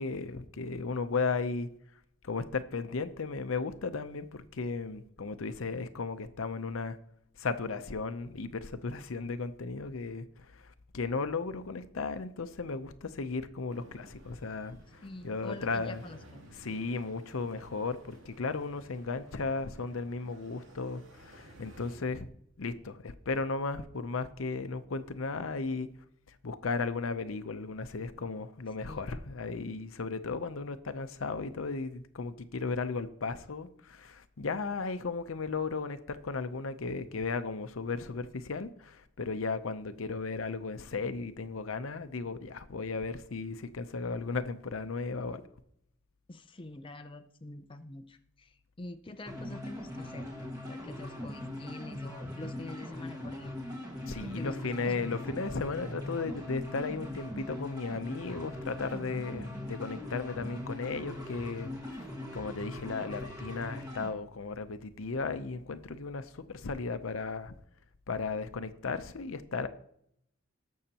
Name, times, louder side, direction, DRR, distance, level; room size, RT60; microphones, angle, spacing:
voice 1, 0.0-1.7 2.2-7.0 7.4-10.3 10.5-10.7 10.9-16.0 16.6-22.3 22.6-25.9 26.4-45.4 54.1-61.7 62.3-67.5 68.1-69.7, left 4 dB, 80° left, 0.7 m, -35 dB
sound 1, 13.7-22.0, right 1 dB, 65° right, 2.6 m, -55 dB
voice 2, 15.0-16.4 28.9-29.1 46.3-50.3 50.7-53.6 54.2-55.5, left 1 dB, 25° left, 0.5 m, -46 dB
sound 2, 49.3-64.1, left 1 dB, 20° right, 1.7 m, -41 dB
19.0 x 6.5 x 2.9 m
head